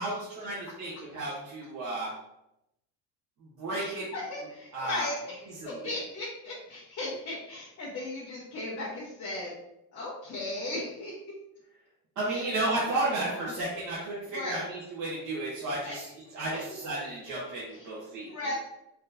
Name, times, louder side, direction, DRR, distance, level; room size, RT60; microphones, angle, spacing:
voice 1, 0.0-2.1 3.4-4.1 4.7-5.1 5.4-5.9 12.2-18.5, right 2 dB, 45° right, -8 dB, 1.2 m, -33 dB
voice 2, 3.7-5.4 5.7-9.5 9.9-11.1 12.3-12.4 12.8-12.9 13.3-13.5 14.3-14.6 15.8-16.0 18.3-18.5, left 2 dB, 35° left, -7 dB, 1.2 m, -36 dB
4.4 x 3.0 x 2.7 m, 0.85 s
cardioid pair, 145°, 41 cm